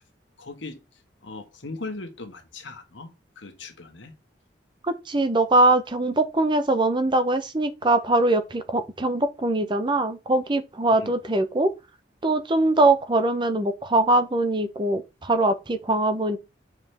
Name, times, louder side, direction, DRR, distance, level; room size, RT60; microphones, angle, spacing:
voice 1, 0.4-0.8 1.2-3.1 3.4-4.1 10.9-11.1, left 3 dB, 85° left, 1.4 m, -38 dB
voice 2, 4.9-11.7 12.2-16.4, right 2 dB, 25° right, 0.6 m, -22 dB
7.6 x 4.8 x 3.3 m
head